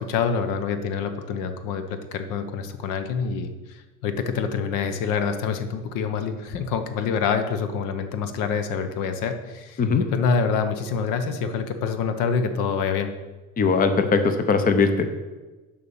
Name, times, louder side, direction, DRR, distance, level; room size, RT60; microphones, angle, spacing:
voice 1, 0.0-9.8 10.1-13.1, left 6 dB, 85° left, 8 dB, 0.9 m, -26 dB
voice 2, 13.6-15.1, left 4 dB, 25° left, 8 dB, 0.7 m, -20 dB
6.9 x 5.5 x 6.9 m, 1.2 s
cardioid pair, 150°, 32 cm